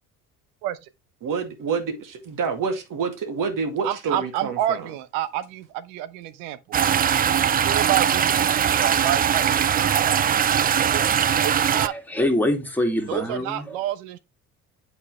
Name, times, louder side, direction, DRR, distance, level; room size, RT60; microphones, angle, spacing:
voice 1, 1.2-4.8, right 5 dB, 45° right, 2.2 m, -28 dB
voice 2, 3.8-6.8 7.4-10.3 10.8-11.1 11.4-11.9 13.1-14.2, right 12 dB, 70° right, 0.9 m, -29 dB
sound 1, 6.7-11.9, right 8 dB, 20° right, 0.4 m, -21 dB
voice 3, 11.6-13.8, left 1 dB, 5° left, 2.1 m, -25 dB
8.1 x 5.6 x 3.1 m
hypercardioid pair, 60°, 44 cm